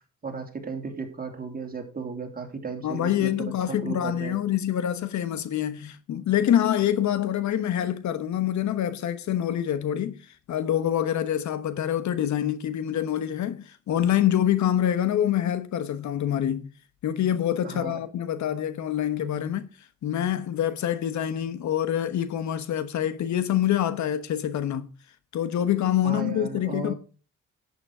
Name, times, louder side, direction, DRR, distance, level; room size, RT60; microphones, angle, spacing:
voice 1, 0.2-4.4 17.6-18.0 26.0-26.9, right 4 dB, 30° right, 3.1 m, -35 dB
voice 2, 2.8-10.2 10.5-16.7 17.0-19.7 20.0-24.9 25.3-26.9, left 10 dB, 70° left, 1.2 m, -26 dB
11.0 x 8.8 x 4.9 m
cardioid pair, 90°, 30 cm